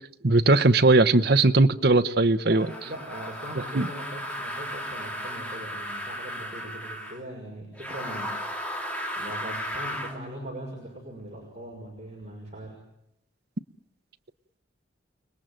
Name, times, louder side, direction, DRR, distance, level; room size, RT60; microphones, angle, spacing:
voice 1, 0.2-2.7 3.7-3.9, right 2 dB, 55° right, 0.9 m, -19 dB
voice 2, 2.5-8.3 9.2-12.8, right 1 dB, 35° right, 6.2 m, -40 dB
sound 1, 2.6-7.2 7.7-10.2, equal, 5° left, 2.9 m, -35 dB
30.0 x 20.0 x 9.1 m
head